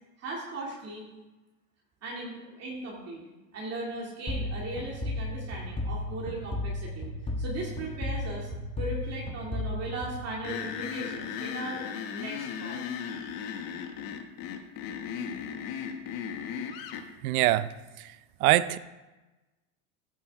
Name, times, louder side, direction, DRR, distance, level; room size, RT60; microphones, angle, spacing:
voice 1, 0.2-1.1 2.0-3.2 3.5-7.1 7.4-8.5 8.8-11.8 12.1-12.8, right 2 dB, 35° right, -3 dB, 2.6 m, -38 dB
sound 1, 4.3-10.9, left 1 dB, 10° left, 1.3 m, -34 dB
sound 2, 10.4-17.1, left 8 dB, 50° left, 1.3 m, -36 dB
voice 2, 17.2-17.7 18.4-18.8, right 15 dB, 70° right, 16 dB, 0.7 m, -22 dB
15.0 x 6.2 x 3.6 m, 1.1 s
supercardioid pair, 115°, 45 cm